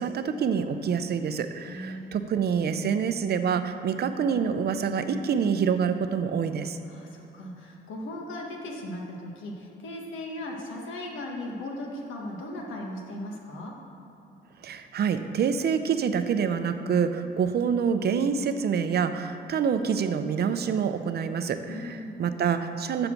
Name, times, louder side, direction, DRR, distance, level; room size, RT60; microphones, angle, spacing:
voice 1, 0.0-6.8 14.6-23.1, right 6 dB, 55° right, 9 dB, 0.6 m, -26 dB
voice 2, 1.7-2.1 6.8-13.7 21.7-22.1, left 1 dB, 80° left, 0 dB, 1.5 m, -37 dB
7.0 x 6.8 x 5.9 m, 3.0 s
cardioid pair, 90°, 20 cm